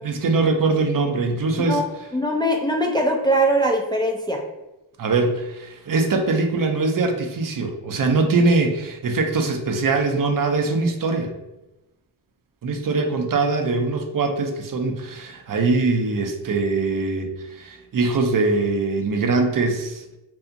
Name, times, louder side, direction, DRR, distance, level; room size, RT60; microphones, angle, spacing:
voice 1, 0.0-1.8 5.0-11.3 12.6-20.0, right 3 dB, 50° right, 4 dB, 0.6 m, -22 dB
voice 2, 2.1-4.4, right 1 dB, 10° left, 1 dB, 0.4 m, -21 dB
2.7 x 2.3 x 2.6 m, 0.98 s
cardioid pair, 45°, 43 cm